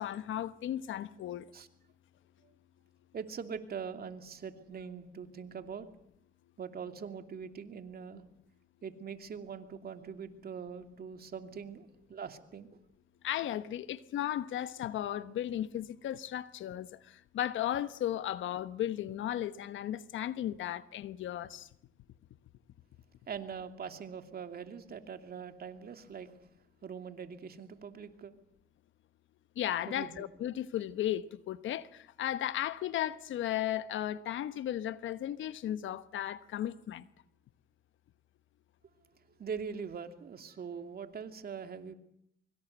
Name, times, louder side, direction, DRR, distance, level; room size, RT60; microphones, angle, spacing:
voice 1, 0.0-1.5 13.2-21.7 29.6-37.0, left 12 dB, 75° left, 1.1 m, -35 dB
voice 2, 3.1-5.9 6.6-8.2 8.8-12.9 23.3-26.3 26.8-28.3 29.9-30.2 39.4-41.9, right 6 dB, 50° right, 2.7 m, -42 dB
24.5 x 24.0 x 8.1 m
cardioid pair, 90°, 20 cm